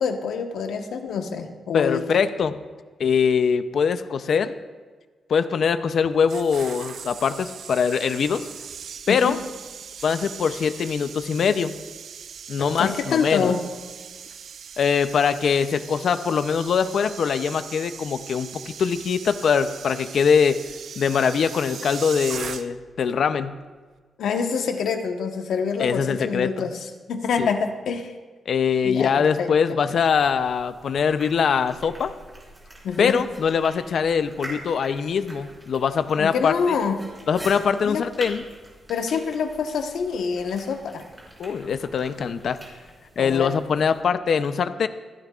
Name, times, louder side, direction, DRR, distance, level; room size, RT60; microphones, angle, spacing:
voice 1, 0.0-2.2 9.1-9.4 12.6-13.6 24.2-28.1 28.8-29.5 32.8-33.2 36.2-37.1 37.8-38.0 38.9-41.0 43.2-43.5, left 6 dB, 85° left, 5 dB, 1.2 m, -26 dB
voice 2, 1.7-2.6 3.0-4.6 5.3-8.5 9.1-9.4 10.0-11.7 12.5-13.5 14.8-20.6 21.0-23.6 25.8-26.5 27.4-27.5 28.5-32.1 33.0-36.5 37.3-38.4 41.4-42.6 43.2-44.9, left 6 dB, 60° left, 11 dB, 0.6 m, -22 dB
sound 1, 6.0-23.0 23.2-23.5, right 7 dB, 70° right, 0.6 m, -39 dB
sound 2, 30.0-44.0, right 1 dB, 10° right, 4.4 m, -45 dB
26.5 x 10.5 x 2.4 m, 1.4 s
wide cardioid pair, 135°, 0 cm